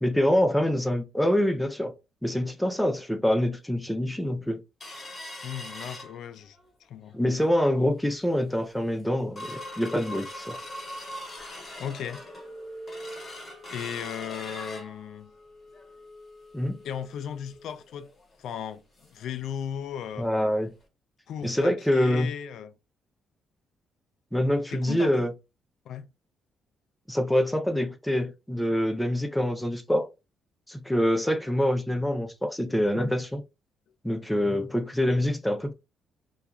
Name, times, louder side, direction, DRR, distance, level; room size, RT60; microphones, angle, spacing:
voice 1, 0.0-1.9 2.2-4.6 7.1-10.6 16.5-16.8 20.2-20.7 21.4-22.3 24.3-25.3 27.1-30.1 30.7-33.4 34.0-35.7, left 1 dB, 5° left, 0.4 m, -25 dB
sound 1, 4.8-6.7 7.1-7.2 7.5-7.9 8.3-8.4 8.8-19.3 19.6-19.7 20.1-20.3 20.8-20.9, left 1 dB, 20° left, 1.1 m, -42 dB
voice 2, 5.4-6.6 6.9-7.2 11.8-12.2 13.7-15.3 16.8-18.1 18.4-20.3 21.3-22.8 24.7-25.3 25.9-26.1, left 8 dB, 70° left, 0.3 m, -36 dB
2.3 x 2.3 x 2.9 m
cardioid pair, 120°, 0 cm